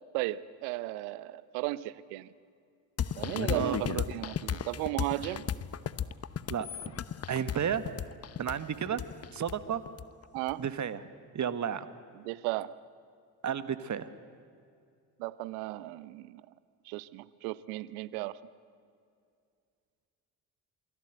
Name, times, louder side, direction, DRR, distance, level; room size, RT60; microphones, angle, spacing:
voice 1, 0.1-2.3 3.2-5.5 10.3-10.6 12.2-12.7 15.2-16.4 16.9-18.4, right 17 dB, 70° right, 18 dB, 1.0 m, -35 dB
sound 1, 3.0-10.5, left 8 dB, 30° left, 1.0 m, -35 dB
voice 2, 3.5-4.0 6.5-7.0 7.3-7.9 8.4-9.0 9.3-9.8 10.6-11.0 11.3-11.9 13.4-14.1, right 8 dB, 35° right, 12 dB, 1.6 m, -32 dB
28.0 x 24.5 x 8.0 m, 2.3 s
hypercardioid pair, 50°, 47 cm